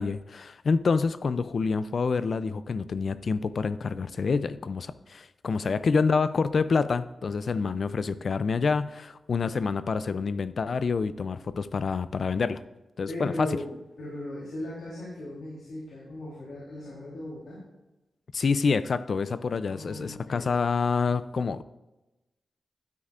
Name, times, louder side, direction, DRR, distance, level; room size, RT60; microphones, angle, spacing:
voice 1, 0.0-12.6 13.0-13.6 18.3-21.6, left 4 dB, 55° left, 14 dB, 0.4 m, -27 dB
voice 2, 13.1-13.7 14.0-17.6 19.7-20.5, left 1 dB, 90° left, -6 dB, 3.5 m, -37 dB
12.0 x 9.6 x 2.5 m, 1.0 s
wide cardioid pair, 95°, 0 cm